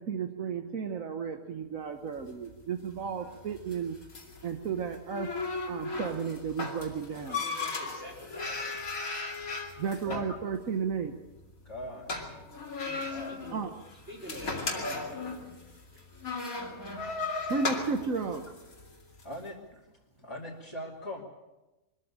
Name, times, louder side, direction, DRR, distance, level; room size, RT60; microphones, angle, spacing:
voice 1, 0.0-4.0 4.4-5.3 5.7-7.4 9.8-11.1 13.5-13.7 17.5-18.4, right 6 dB, 70° right, 6 dB, 1.5 m, -33 dB
sound 1, 2.1-19.4, left 3 dB, 80° left, 3.0 m, -37 dB
voice 2, 7.3-8.7 10.3-10.4 12.8-13.6 14.1-15.3 17.3-17.8, equal, 50° right, -3 dB, 5.2 m, -45 dB
voice 3, 11.6-12.1 13.1-13.4 19.2-19.9 20.2-21.2, left 1 dB, 20° left, -5 dB, 2.8 m, -40 dB
23.5 x 13.5 x 8.9 m, 1.0 s
omnidirectional pair, 1.5 m